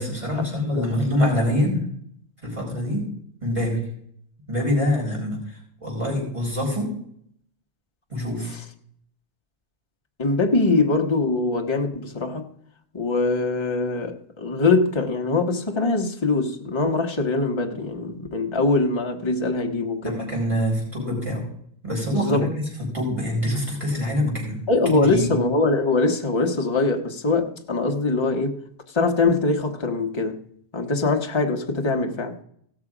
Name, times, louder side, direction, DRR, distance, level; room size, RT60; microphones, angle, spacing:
voice 1, 0.0-1.9 2.4-3.1 3.4-3.8 4.5-6.9 8.1-8.6 20.0-21.5 21.8-24.6 24.8-25.3, left 1 dB, 30° right, 5.1 m, -25 dB
voice 2, 10.2-12.5 12.9-20.2 22.1-22.5 24.7-28.6 28.9-30.4 30.7-32.4, left 3 dB, 25° left, 1.1 m, -22 dB
17.0 x 6.6 x 4.9 m
omnidirectional pair, 1.2 m